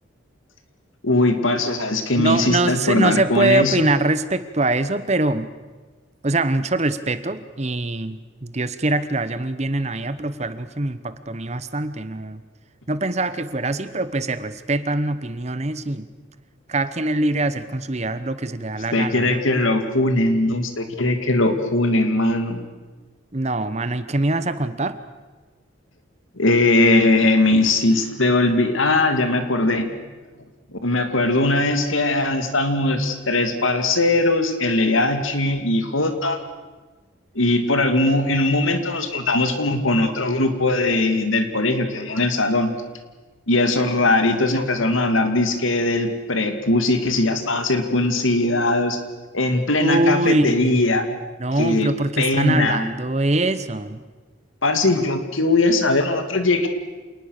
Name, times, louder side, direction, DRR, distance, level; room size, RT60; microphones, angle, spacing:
voice 1, 1.0-3.9 18.9-22.6 26.4-29.9 30.7-36.4 37.3-42.7 43.5-49.0 49.3-51.0 51.6-51.9 52.2-52.9 54.6-56.7, left 2 dB, 80° left, 7 dB, 2.5 m, -20 dB
voice 2, 2.2-5.5 6.2-12.4 12.9-16.1 16.7-19.4 23.3-25.0 49.8-51.0 51.4-54.0, right 2 dB, 35° right, 13 dB, 1.0 m, -23 dB
27.0 x 19.5 x 6.7 m, 1.3 s
head